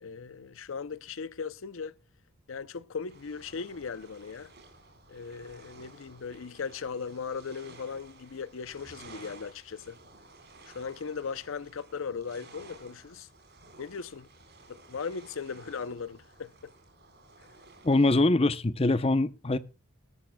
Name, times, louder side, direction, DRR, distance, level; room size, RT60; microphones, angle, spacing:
voice 1, 0.0-2.0 2.5-4.5 5.1-10.0 10.7-13.3 13.8-14.3 14.7-16.7, left 5 dB, 70° left, 0.6 m, -38 dB
sound 1, 3.1-18.1, right 3 dB, 50° right, 4.4 m, -54 dB
voice 2, 17.8-19.6, left 2 dB, 25° left, 0.7 m, -23 dB
20.5 x 13.0 x 2.2 m
head